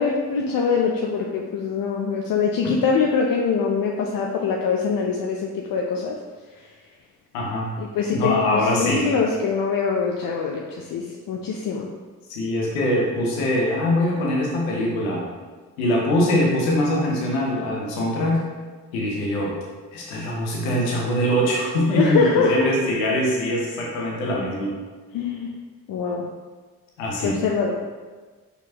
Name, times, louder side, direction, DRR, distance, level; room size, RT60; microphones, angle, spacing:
voice 1, 0.0-6.2 7.8-11.9 22.0-22.7 25.1-25.5 25.9-26.3 27.2-27.7, left 5 dB, 55° left, -1 dB, 0.6 m, -23 dB
voice 2, 7.3-7.7 8.1-9.1 12.3-15.2 15.8-18.4 18.9-19.6 19.9-24.8 27.0-27.4, left 1 dB, 90° left, -2 dB, 0.9 m, -23 dB
4.4 x 3.9 x 2.8 m, 1.4 s
hypercardioid pair, 45°, 40 cm